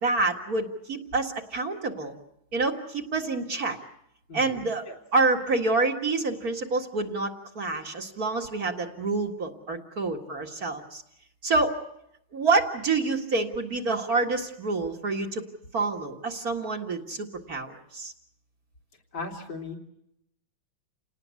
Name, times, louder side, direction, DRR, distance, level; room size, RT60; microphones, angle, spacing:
voice 1, 0.0-2.1 2.5-3.8 4.3-4.8 5.1-11.0 11.4-11.7 12.3-15.4 15.7-18.1, right 3 dB, 50° right, 2 dB, 2.3 m, -27 dB
voice 2, 4.3-5.0 19.1-19.8, left 3 dB, 70° left, 0 dB, 4.2 m, -38 dB
29.0 x 19.0 x 8.3 m, 0.80 s
omnidirectional pair, 2.2 m